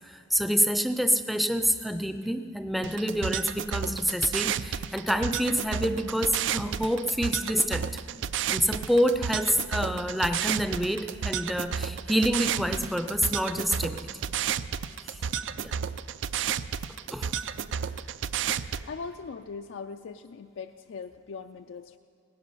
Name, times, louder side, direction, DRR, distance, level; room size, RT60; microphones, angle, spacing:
voice 1, 0.1-7.9 8.5-14.0 15.1-15.2 15.6-15.7 17.1-17.3, equal, ahead, 8 dB, 0.5 m, -27 dB
sound 1, 2.8-18.8, right 8 dB, 75° right, 0.4 m, -32 dB
voice 2, 18.9-22.0, left 5 dB, 85° left, 6 dB, 0.4 m, -40 dB
17.5 x 10.5 x 5.6 m, 2.7 s
head